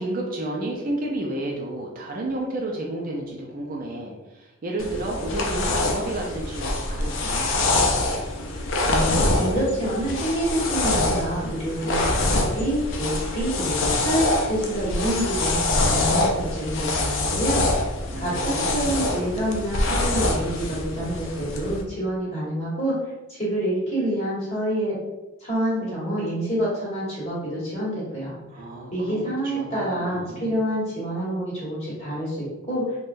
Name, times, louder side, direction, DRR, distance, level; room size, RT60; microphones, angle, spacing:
voice 1, 0.0-7.8 18.1-18.9 28.5-30.6, right 1 dB, 40° right, -1 dB, 0.4 m, -31 dB
sound 1, 4.8-21.8, left 2 dB, 60° left, 0.4 m, -25 dB
voice 2, 8.8-17.6 18.2-23.0 23.3-25.0 25.4-28.3 28.9-33.0, right 1 dB, 30° left, -8 dB, 1.4 m, -27 dB
3.5 x 2.2 x 2.5 m, 1.1 s
head